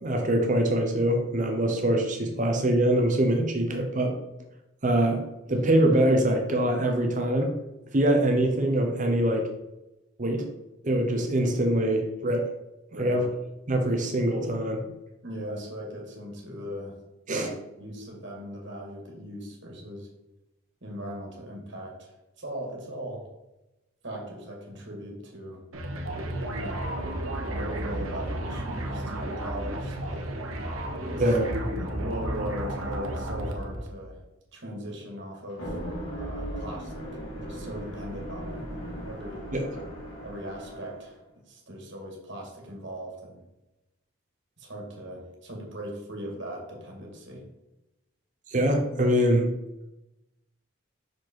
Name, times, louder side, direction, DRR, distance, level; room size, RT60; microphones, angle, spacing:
voice 1, 0.0-4.1 4.8-7.5 7.9-9.5 10.2-10.5 10.8-12.5 13.0-13.3 13.7-14.8 17.3-17.5 31.2-31.8 39.5-39.7 48.5-49.6, right 1 dB, 35° right, 3 dB, 0.8 m, -24 dB
voice 2, 12.9-13.3 15.2-16.9 17.3-17.5 17.8-20.1 20.8-23.2 24.0-25.6 26.6-27.0 27.5-30.3 31.1-31.3 31.7-34.2 34.5-35.8 36.2-39.5 40.2-41.2 41.5-43.5 44.6-47.4, equal, 55° right, 0 dB, 2.0 m, -39 dB
sound 1, 25.7-34.0, right 1 dB, 85° right, 1.1 m, -33 dB
sound 2, 35.5-41.1, equal, 80° left, 2.3 m, -38 dB
6.1 x 5.0 x 4.5 m, 0.96 s
head